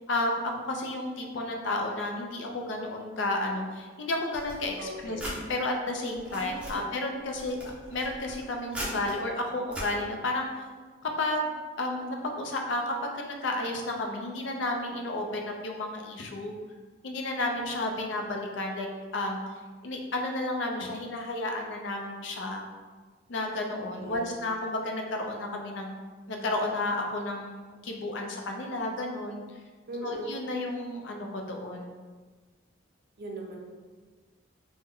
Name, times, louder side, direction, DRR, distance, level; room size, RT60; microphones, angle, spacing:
voice 1, 0.1-7.6 7.9-10.5 11.0-16.6 17.0-18.9 19.1-19.4 19.8-22.6 23.3-26.0 26.3-29.4 30.0-31.9, left 2 dB, 75° left, 2 dB, 0.5 m, -32 dB
sound 1, 4.3-5.4 6.0-6.8 7.3-9.2 9.7-9.9, equal, 5° right, 0.6 m, -39 dB
voice 2, 4.8-5.4 6.3-6.9 24.0-24.4 29.9-30.3 33.2-33.6, right 1 dB, 55° right, 1 dB, 0.5 m, -40 dB
3.0 x 2.1 x 3.6 m, 1.4 s
head